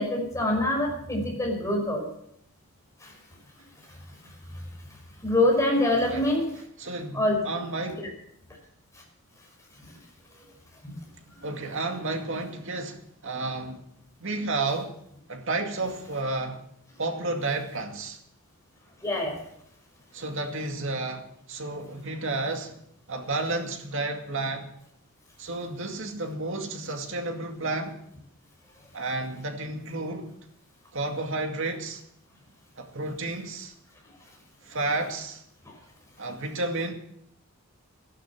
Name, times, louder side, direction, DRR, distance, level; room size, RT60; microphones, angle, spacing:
voice 1, 0.0-2.1 5.2-6.4 7.1-7.4 8.0-8.1 19.0-19.3, left 1 dB, 15° left, 5.7 m, -24 dB
voice 2, 6.8-8.0 11.4-13.8 14.2-14.9 15.3-16.6 17.0-18.2 20.1-22.8 23.1-24.7 25.4-28.0 28.9-30.3 30.9-32.0 32.8-33.7 34.6-35.4 36.2-36.9, right 2 dB, 65° right, 2.2 m, -31 dB
13.5 x 12.0 x 7.3 m
head